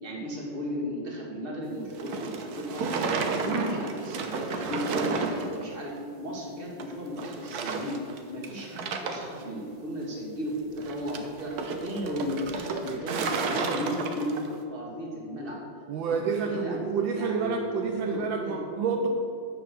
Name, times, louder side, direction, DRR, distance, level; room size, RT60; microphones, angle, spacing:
voice 1, 0.0-3.1 3.4-5.3 5.6-8.0 8.3-15.6 16.1-16.8 17.1-18.6 19.0-19.1, equal, 30° right, -2 dB, 1.8 m, -35 dB
sound 1, 1.9-5.7 6.0-6.1 6.8-6.9 7.2-8.2 8.4-9.4 10.8-14.6, right 4 dB, 60° right, 1.1 m, -32 dB
voice 2, 3.4-3.8 15.9-19.1, right 5 dB, 75° right, 4 dB, 1.4 m, -29 dB
8.8 x 6.9 x 6.4 m, 2.6 s
omnidirectional pair, 2.2 m